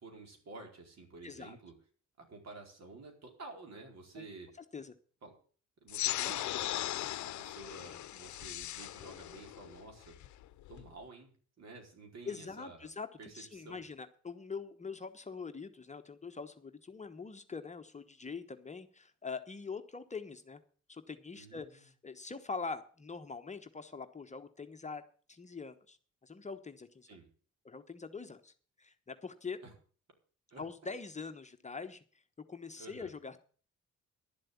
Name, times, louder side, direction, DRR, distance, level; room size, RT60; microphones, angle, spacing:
voice 1, 0.0-1.7 2.2-4.5 5.2-5.3 5.8-6.8 7.1-10.2 10.7-11.3 11.6-12.9 13.2-13.8 21.3-21.9 27.0-27.3 29.6-29.7 30.5-30.6 32.8-33.1, right 3 dB, 60° right, 3 dB, 4.7 m, -51 dB
voice 2, 1.2-1.6 4.2-4.3 4.7-4.9 6.1-6.6 12.2-13.1 13.3-20.6 20.9-25.0 25.3-26.0 26.2-27.1 27.6-28.5 28.8-29.6 30.6-32.0 32.5-33.4, left 4 dB, 25° left, 8 dB, 1.1 m, -43 dB
sound 1, 5.9-10.9, left 14 dB, 70° left, 0.7 m, -38 dB
11.5 x 7.6 x 8.4 m, 0.43 s
cardioid pair, 90°, 30 cm